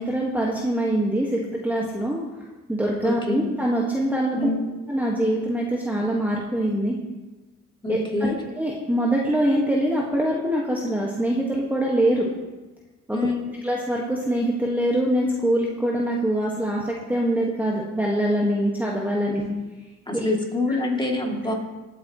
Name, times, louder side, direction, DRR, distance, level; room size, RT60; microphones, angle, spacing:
voice 1, 0.0-2.2 2.7-4.5 4.9-7.0 7.9-8.0 8.6-12.3 13.1-13.2 13.6-19.4 20.1-20.2, right 1 dB, 5° right, -3 dB, 1.7 m, -24 dB
voice 2, 3.0-3.5 4.3-4.7 7.8-8.4 13.1-13.6 19.3-19.7 20.1-21.5, left 2 dB, 15° left, -1 dB, 2.8 m, -26 dB
19.0 x 8.7 x 3.1 m, 1.2 s
cardioid pair, 90°, 30 cm